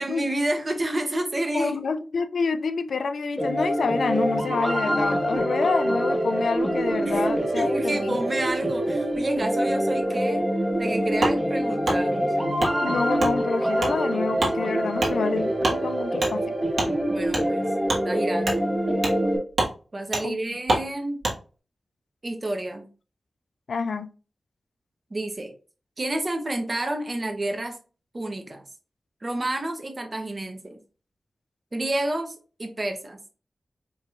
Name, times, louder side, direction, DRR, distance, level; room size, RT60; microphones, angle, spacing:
voice 1, 0.0-1.8 7.0-7.3 7.5-10.5 10.8-12.3 17.1-17.7 18.0-18.7 19.9-21.2 22.2-22.9 25.1-25.5 26.0-27.8 28.1-28.6 29.2-30.8 31.7-33.3, right 1 dB, 35° right, 0.8 m, -30 dB
voice 2, 1.5-8.2 12.8-16.5 20.2-20.4 23.7-24.1, left 4 dB, 85° left, 0.3 m, -28 dB
sound 1, 3.4-19.4, equal, 5° left, 1.0 m, -25 dB
Wood, 11.2-11.4 11.8-12.0 12.6-12.7 13.2-13.3 13.8-13.9 14.4-14.5 15.0-15.1 15.6-15.8 16.2-16.3 16.7-16.9 17.3-17.4 17.9-18.0 18.4-18.6 19.0-19.2 19.5-19.7 20.1-20.2 20.7-20.8 21.2-21.4, right 2 dB, 70° right, 1.3 m, -25 dB
4.6 x 2.9 x 2.4 m
wide cardioid pair, 90°, 0 cm